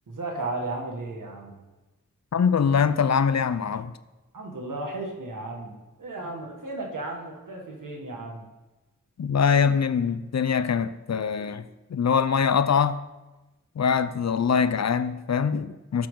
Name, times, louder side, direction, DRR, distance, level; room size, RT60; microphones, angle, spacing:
voice 1, 0.1-1.6 4.3-8.5, right 2 dB, 85° right, 1.9 m, -34 dB
voice 2, 2.3-3.9 9.2-11.7 11.9-13.0 13.8-16.1, left 6 dB, 60° left, 0.6 m, -23 dB
12.0 x 7.1 x 3.8 m
wide cardioid pair, 60°, 31 cm